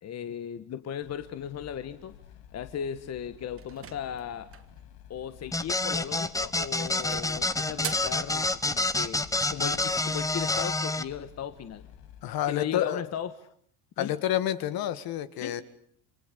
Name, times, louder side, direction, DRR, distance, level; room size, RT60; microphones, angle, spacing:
voice 1, 0.0-2.1 2.5-4.5 5.1-11.8 12.5-13.3 14.0-14.1 15.4-15.6, left 9 dB, 35° left, 11 dB, 1.5 m, -36 dB
sound 1, 1.0-12.4, left 9 dB, 75° left, 3.5 m, -52 dB
sound 2, 3.6-4.8 6.1-6.5 6.8-8.2, right 7 dB, 30° right, 2.7 m, -41 dB
sound 3, 5.5-11.0, left 2 dB, 5° left, 1.2 m, -28 dB
voice 2, 12.2-13.0 14.0-15.6, left 12 dB, 50° left, 13 dB, 2.0 m, -29 dB
28.5 x 24.5 x 8.4 m, 0.64 s
supercardioid pair, 120°, 44 cm